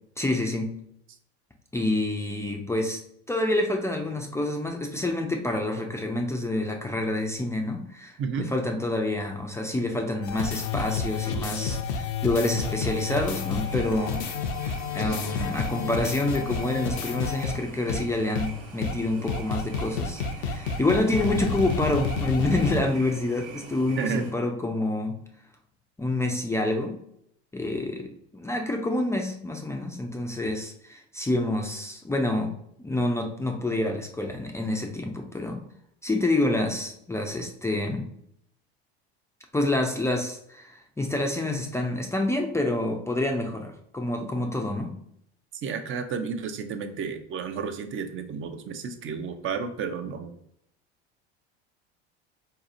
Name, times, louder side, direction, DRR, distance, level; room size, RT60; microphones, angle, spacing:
voice 1, 0.2-0.7 1.7-3.0 3.3-14.2 14.9-25.2 26.0-27.0 27.5-35.6 36.0-38.1 39.5-44.9, left 2 dB, 10° left, 2 dB, 0.4 m, -27 dB
voice 2, 8.2-8.5 24.0-24.3 45.5-50.4, right 6 dB, 40° right, 8 dB, 0.6 m, -32 dB
sound 1, 10.2-17.6 17.9-18.0 18.3-18.5 18.8-18.9 19.3-22.8, left 5 dB, 75° left, 0.5 m, -30 dB
sound 2, 12.4-24.3, right 4 dB, 60° right, 1.0 m, -44 dB
4.0 x 2.8 x 2.5 m, 0.73 s
hypercardioid pair, 80°, 33 cm